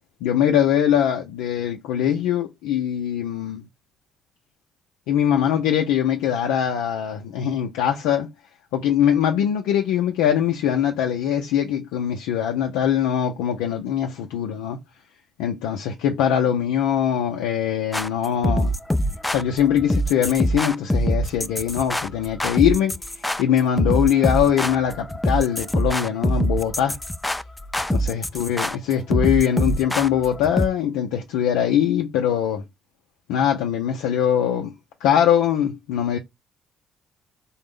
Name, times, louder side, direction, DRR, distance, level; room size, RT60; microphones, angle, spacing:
voice 1, 0.2-3.6 5.1-8.3 8.7-14.8 15.4-18.8 19.3-23.0 23.4-27.0 27.9-32.6 33.3-34.7 35.0-36.2, left 9 dB, 90° left, 0.4 m, -22 dB
sound 1, 17.9-30.7, equal, 15° left, 0.3 m, -24 dB
3.7 x 2.0 x 3.6 m
supercardioid pair, 60°, 0 cm